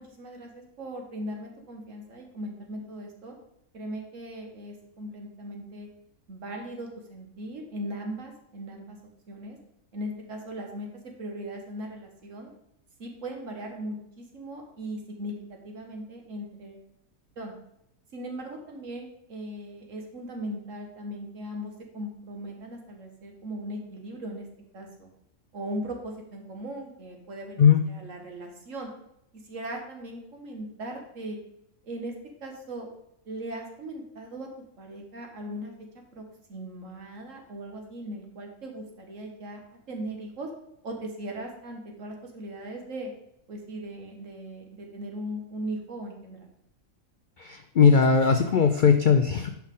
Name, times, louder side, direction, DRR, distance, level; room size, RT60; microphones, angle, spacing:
voice 1, 0.0-3.3 3.7-5.9 6.3-9.0 9.3-9.6 9.9-10.9 11.2-12.5 13.0-15.3 15.6-16.8 17.4-17.5 18.1-24.5 24.7-25.1 25.5-28.9 29.5-31.4 31.8-32.1 32.4-32.9 33.3-34.5 34.8-35.7 36.1-36.2 36.5-39.6 39.9-40.5 40.8-43.1 43.5-46.5, right 1 dB, 60° right, 2 dB, 1.8 m, -38 dB
voice 2, 47.4-49.5, left 6 dB, 75° left, 7 dB, 0.4 m, -19 dB
10.0 x 5.9 x 3.7 m, 0.79 s
omnidirectional pair, 1.5 m